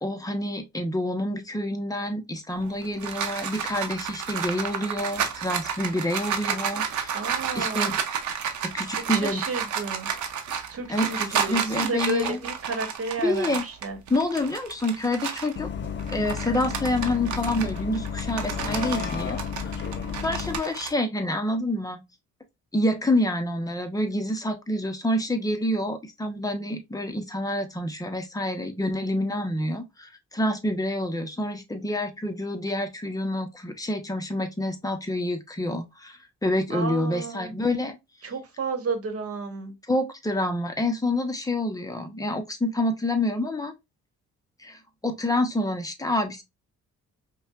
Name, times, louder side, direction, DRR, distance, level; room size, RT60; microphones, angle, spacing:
voice 1, 0.0-7.1 7.5-8.0 8.6-9.4 10.9-12.4 13.2-13.6 14.1-15.7 16.1-19.4 20.2-22.0 22.7-38.0 39.9-43.7 44.6-46.4, left 1 dB, 10° left, 0.8 m, -27 dB
sound 1, 2.6-15.6 16.0-20.9, right 7 dB, 70° right, 0.8 m, -31 dB
voice 2, 7.1-7.9 9.0-10.1 10.7-14.0 36.7-37.6 38.2-39.7, right 3 dB, 50° right, 1.1 m, -32 dB
Bus, 15.6-20.6, left 7 dB, 40° left, 0.4 m, -32 dB
5.2 x 2.3 x 2.4 m
cardioid pair, 90°, 30 cm